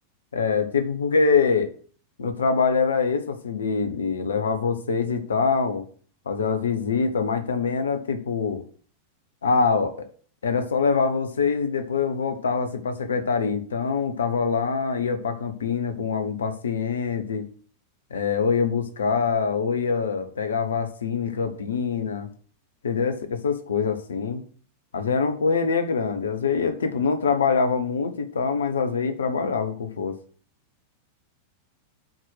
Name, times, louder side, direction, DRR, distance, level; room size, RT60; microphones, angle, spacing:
voice 1, 0.3-1.7 2.2-5.8 6.2-8.6 9.4-10.1 10.4-17.5 18.1-22.3 22.8-24.4 24.9-30.2, left 5 dB, 70° left, 8 dB, 1.3 m, -24 dB
8.0 x 4.7 x 6.5 m, 0.44 s
figure-of-eight pair, 90°, 0 cm